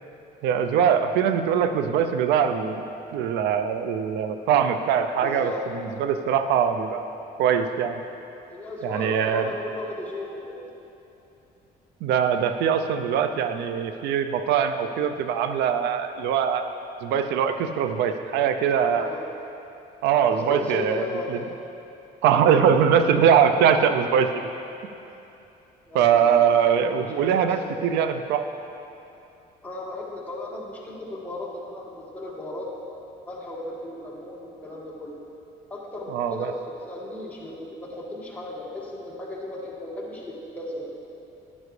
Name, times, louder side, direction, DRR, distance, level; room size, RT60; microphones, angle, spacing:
voice 1, 0.4-2.8 3.1-7.1 7.4-7.9 8.8-9.5 12.0-16.7 17.0-19.1 20.0-21.4 22.2-24.5 25.9-28.5 36.1-36.5, right 7 dB, 85° right, 8 dB, 0.5 m, -22 dB
voice 2, 5.2-5.6 8.5-10.7 19.0-19.2 20.3-21.3 25.9-26.3 26.8-27.7 29.6-32.7 33.3-35.1 35.7-40.9, left 1 dB, 10° left, -5 dB, 1.9 m, -36 dB
11.0 x 9.4 x 3.2 m, 2.8 s
cardioid pair, 110°, 17 cm